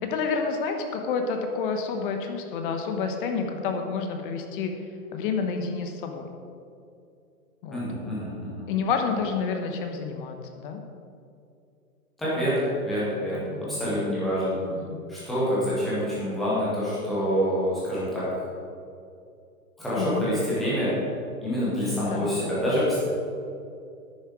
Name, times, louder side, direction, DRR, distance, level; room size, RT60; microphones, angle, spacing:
voice 1, 0.0-4.7 5.1-6.3 7.6-7.8 8.7-10.8 13.5-13.9 14.7-15.0 20.0-20.3 22.1-22.4, left 5 dB, 35° left, 5 dB, 1.1 m, -29 dB
voice 2, 7.7-8.7 12.2-14.6 15.1-18.3 19.8-20.9 21.4-23.0, equal, ahead, -10 dB, 0.3 m, -26 dB
10.0 x 9.3 x 4.9 m, 2.5 s
hypercardioid pair, 120°, 45 cm